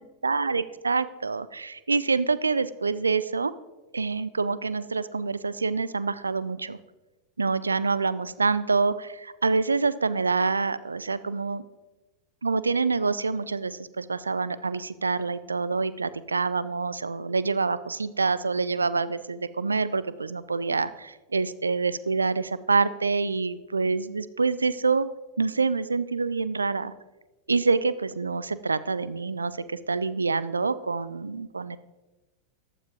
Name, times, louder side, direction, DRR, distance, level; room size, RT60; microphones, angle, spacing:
voice 1, 0.2-3.5 3.9-6.8 7.4-11.6 12.4-25.1 25.4-26.9 27.5-31.8, right 4 dB, 75° right, 16 dB, 0.5 m, -26 dB
14.5 x 12.0 x 3.5 m, 1.1 s
figure-of-eight pair, 90°, 0 cm